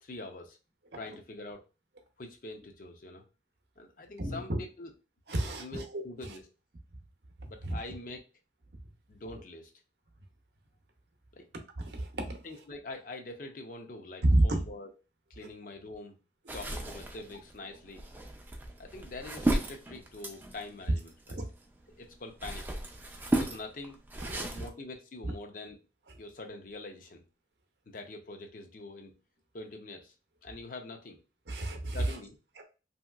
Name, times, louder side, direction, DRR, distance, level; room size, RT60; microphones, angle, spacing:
voice 1, 0.0-0.6 0.9-1.6 2.2-3.2 3.8-4.9 5.6-6.4 7.5-8.2 9.1-9.7 11.3-11.5 12.4-14.9 15.3-16.1 16.5-18.0 18.8-21.4 22.0-22.6 23.3-24.0 24.5-25.8 26.2-27.2 27.9-29.1 29.5-30.1 30.4-31.2 31.9-32.4, left 2 dB, 50° left, 0.5 m, -44 dB
voice 2, 4.2-4.6 5.3-6.4 7.4-7.8 11.8-12.4 14.2-14.6 15.4-15.5 16.5-16.6 21.3-21.5 24.2-24.5 25.2-25.3 31.5-32.2 32.6-32.7, right 1 dB, 65° right, 0.6 m, -30 dB
sound 1, 16.5-21.7 22.1-24.7, right 1 dB, 10° right, 0.3 m, -34 dB
2.9 x 2.8 x 2.3 m
head